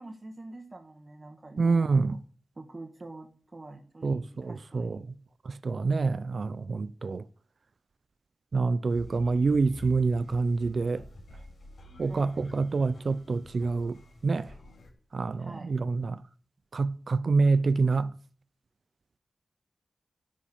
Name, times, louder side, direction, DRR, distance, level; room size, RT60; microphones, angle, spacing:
voice 1, 0.0-2.2 2.5-5.1 12.1-12.8 15.4-15.8, right 2 dB, 35° right, 1.4 m, -46 dB
voice 2, 1.6-2.2 4.0-5.0 5.4-7.2 8.5-11.0 12.0-14.5 15.1-16.2 16.7-18.1, right 4 dB, 60° right, 0.4 m, -27 dB
sound 1, 8.9-14.9, left 2 dB, 80° left, 4.1 m, -49 dB
10.5 x 5.1 x 8.4 m
wide cardioid pair, 105°, 0 cm